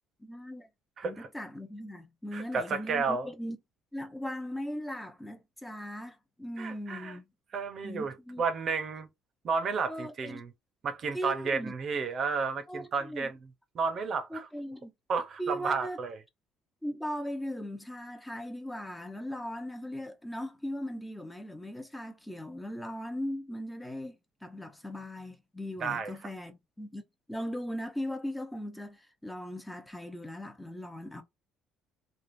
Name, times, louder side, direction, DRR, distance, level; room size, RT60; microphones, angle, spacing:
voice 1, 0.2-0.7 1.0-3.6 3.9-7.3 7.8-8.4 9.9-10.4 11.1-11.7 12.7-13.3 14.3-14.9 15.4-16.0 16.8-27.0 27.3-31.2, equal, 10° left, 0.7 m, -38 dB
voice 2, 1.0-1.3 2.3-3.3 6.6-7.2 7.5-9.1 9.4-10.5 10.8-13.5 13.7-14.5 15.1-16.2 25.8-26.1, right 5 dB, 45° right, 0.8 m, -32 dB
3.4 x 2.4 x 2.6 m
cardioid pair, 105°, 0 cm